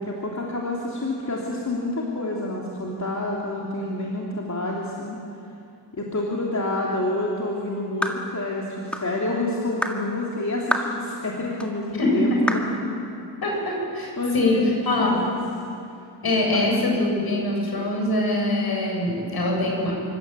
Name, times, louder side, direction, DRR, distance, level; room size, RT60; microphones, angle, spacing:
voice 1, 0.0-5.2 5.9-12.6 13.0-13.1 14.2-15.4 16.5-16.7, left 2 dB, 40° left, -3 dB, 3.1 m, -28 dB
sound 1, 8.0-8.2 8.9-9.1 9.8-10.0 10.7-10.9 11.6-11.7 12.5-12.7, equal, 5° left, 1.9 m, -26 dB
voice 2, 11.9-12.5 13.4-15.2 16.2-19.9, left 1 dB, 60° left, -1 dB, 7.5 m, -23 dB
28.0 x 25.5 x 8.4 m, 2.6 s
wide cardioid pair, 170°, 43 cm